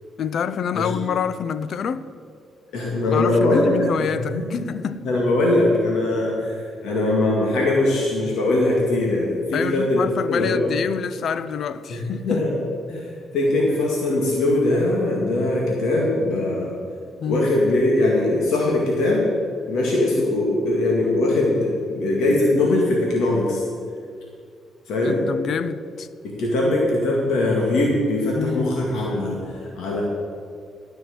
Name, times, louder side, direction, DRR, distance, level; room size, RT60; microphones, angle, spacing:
voice 1, 0.2-2.0 3.1-5.0 9.5-12.4 17.2-17.5 25.0-26.1 28.4-28.7, left 7 dB, 60° left, 0.5 m, -27 dB
voice 2, 2.7-4.6 5.0-10.7 11.9-12.5 12.9-16.7 17.3-19.3 19.7-23.6 24.9-25.2 26.2-30.0, left 2 dB, 80° left, 2.1 m, -21 dB
13.0 x 6.3 x 8.0 m
cardioid pair, 90°, 0 cm